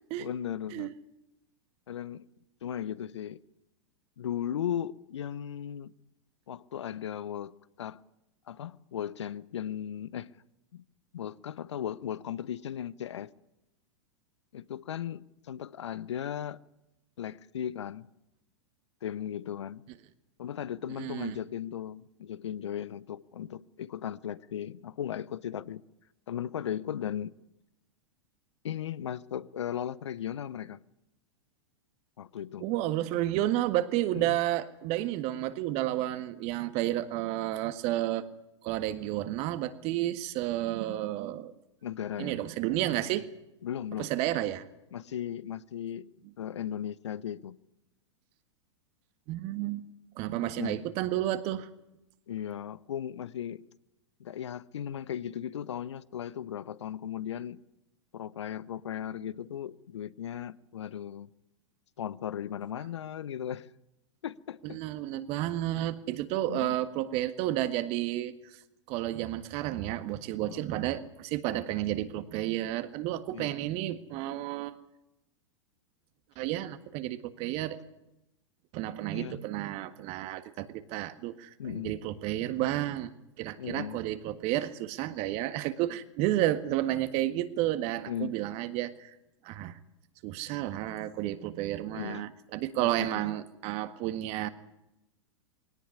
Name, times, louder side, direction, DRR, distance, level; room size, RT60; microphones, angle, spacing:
voice 1, 0.2-0.9 1.9-2.3 2.6-3.4 4.2-5.9 6.5-8.0 8.5-10.3 10.7-10.8 11.1-13.3 14.5-16.6 17.2-18.1 19.0-19.8 20.4-25.8 26.3-27.3 28.6-30.8 32.2-32.7 34.1-34.4 41.8-42.3 43.6-44.1 44.9-46.1 46.4-47.6 50.4-50.8 52.3-53.6 54.2-57.6 58.1-61.3 62.0-63.7 64.2-64.8 65.7-65.9 66.5-66.8 70.5-70.6 73.3-73.6 79.1-79.4 81.6-81.9 83.6-84.0 88.1-88.4 91.9-92.3 92.8-93.2, left 10 dB, 70° left, 0.8 m, -37 dB
voice 2, 21.0-21.4 32.6-38.3 38.6-41.5 42.2-43.3 44.0-44.6 49.3-49.8 50.2-51.7 64.6-68.3 68.9-74.8 76.4-77.8 78.7-83.1 83.4-89.1 89.4-89.8 90.2-94.5, right 14 dB, 45° right, 1.7 m, -31 dB
21.0 x 18.0 x 9.8 m
figure-of-eight pair, 100°, 15 cm